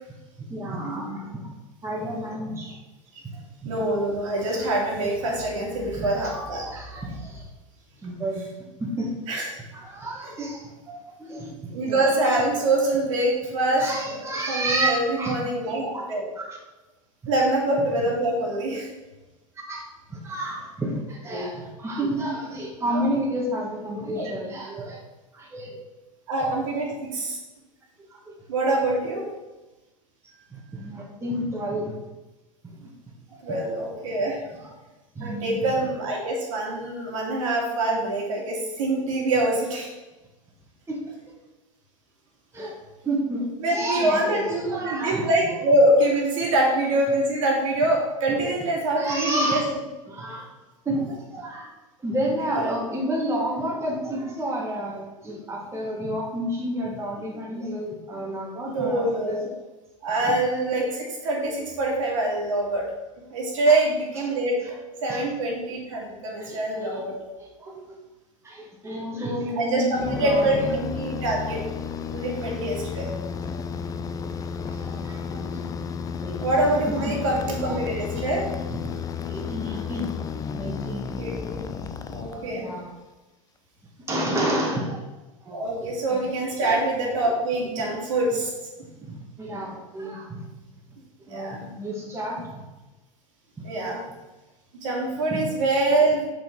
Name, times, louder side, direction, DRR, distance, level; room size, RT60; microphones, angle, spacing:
voice 1, 0.5-1.4 1.8-2.8 3.6-3.7 5.9-7.4 8.0-8.4 8.8-9.1 9.7-11.5 11.8-12.0 13.8-15.4 15.9-16.1 16.3-16.6 19.6-19.8 20.1-25.0 25.3-25.8 26.3-26.5 28.1-28.2 30.5-31.9 32.8-32.9 33.3-33.6 34.6-34.7 35.1-35.6 40.9-41.0 42.5-42.7 43.0-45.5 46.4-46.5 49.0-49.7 50.1-50.5 50.8-51.7 52.0-59.4 60.2-60.3 63.7-63.8 65.1-65.2 66.4-67.0 67.4-67.8 68.4-70.7 72.4-72.5 73.5-73.6 74.6-75.7 76.2-76.4 76.6-77.8 78.7-78.8 79.3-80.1 80.5-81.1 81.8-82.0 82.3-82.9 84.1-85.1 85.4-86.3 86.6-86.8 87.8-87.9 89.0-90.5 91.3-92.6 95.3-95.5, right 1 dB, 15° right, -2 dB, 1.7 m, -31 dB
voice 2, 3.7-6.6 9.3-9.5 10.2-10.3 11.7-16.2 17.3-18.9 22.9-23.1 24.2-24.3 26.3-27.4 28.5-29.2 33.4-34.4 35.2-39.9 43.6-49.6 52.3-52.7 58.7-59.5 60.0-62.8 63.3-64.5 65.0-67.1 69.6-71.6 72.1-73.1 76.4-78.4 81.2-81.6 82.1-82.6 85.5-88.5 91.3-91.6 93.6-94.0 94.8-96.3, right 2 dB, 65° right, -2 dB, 2.4 m, -24 dB
sound 1, 69.9-82.8, left 6 dB, 20° left, 0.5 m, -32 dB
6.2 x 5.5 x 4.6 m, 1.1 s
figure-of-eight pair, 85°, 18 cm